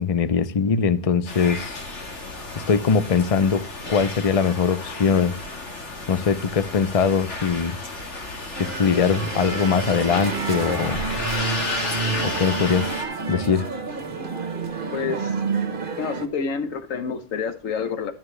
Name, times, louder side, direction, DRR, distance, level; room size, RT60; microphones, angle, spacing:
voice 1, 0.0-1.8 2.6-3.6 3.9-5.4 6.1-7.8 8.5-11.0 12.2-13.0 13.3-13.7, left 6 dB, 35° left, 0.7 m, -21 dB
sound 1, 1.3-13.0, left 2 dB, 65° left, 2.0 m, -32 dB
sound 2, 8.5-16.3, right 4 dB, 45° right, 1.3 m, -29 dB
voice 2, 14.9-15.3 16.0-18.1, left 6 dB, 85° left, 1.4 m, -28 dB
13.0 x 7.4 x 3.3 m
omnidirectional pair, 1.3 m